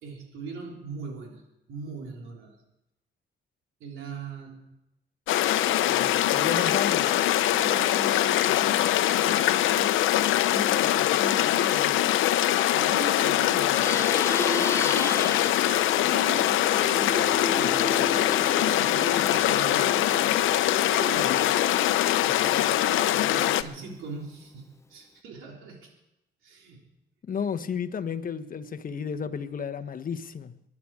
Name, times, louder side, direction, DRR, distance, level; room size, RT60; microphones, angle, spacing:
voice 1, 0.0-1.4 1.7-2.6 3.8-4.7 5.8-6.7 7.4-10.0 10.4-12.0 12.7-14.1 14.5-21.4 22.2-25.9 26.4-26.8, right 4 dB, 85° right, 3.7 m, -40 dB
sound 1, 5.3-23.6, left 13 dB, 85° left, 0.7 m, -23 dB
voice 2, 6.3-7.1 27.2-30.6, left 7 dB, 45° left, 1.1 m, -32 dB
Plucked string instrument, 13.6-23.3, left 2 dB, 15° left, 0.7 m, -35 dB
24.0 x 11.0 x 4.9 m
cardioid pair, 90°, 20 cm